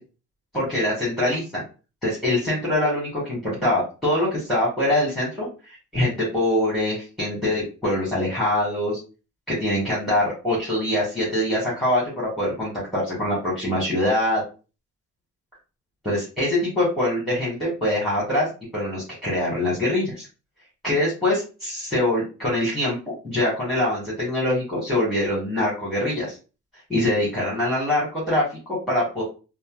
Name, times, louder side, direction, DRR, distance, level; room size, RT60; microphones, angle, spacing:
voice 1, 0.5-1.6 2.0-5.5 5.9-9.0 9.5-14.4 16.0-18.5 18.7-20.3 20.8-26.4 26.9-29.2, left 1 dB, ahead, -6 dB, 1.8 m, -24 dB
4.1 x 2.0 x 2.4 m, 0.33 s
cardioid pair, 90°, 30 cm